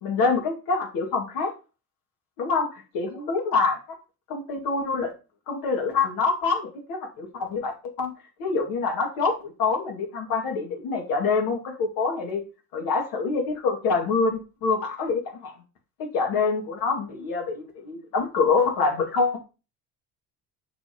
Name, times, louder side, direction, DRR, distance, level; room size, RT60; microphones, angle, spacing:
voice 1, 0.0-1.5 2.4-3.8 4.3-5.1 5.5-8.1 8.4-12.4 12.7-15.5 16.0-19.4, left 4 dB, 75° left, 1 dB, 2.4 m, -26 dB
6.7 x 5.9 x 3.0 m, 0.32 s
hypercardioid pair, 70°, 36 cm